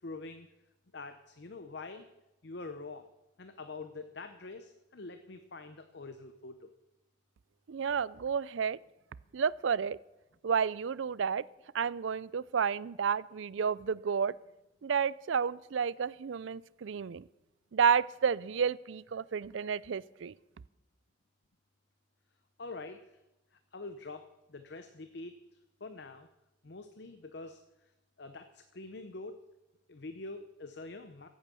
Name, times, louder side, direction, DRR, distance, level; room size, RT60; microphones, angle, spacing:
voice 1, 0.0-0.5 0.9-2.1 2.4-3.1 3.4-6.7 22.6-23.1 23.5-25.4 25.8-26.3 26.6-27.6 28.2-29.4 29.9-31.3, left 3 dB, 55° left, 9 dB, 0.8 m, -45 dB
voice 2, 7.7-8.8 9.3-10.0 10.4-11.4 11.7-14.3 14.8-17.3 17.7-20.3, right 6 dB, 70° right, 21 dB, 0.4 m, -31 dB
15.5 x 8.8 x 6.8 m, 0.95 s
head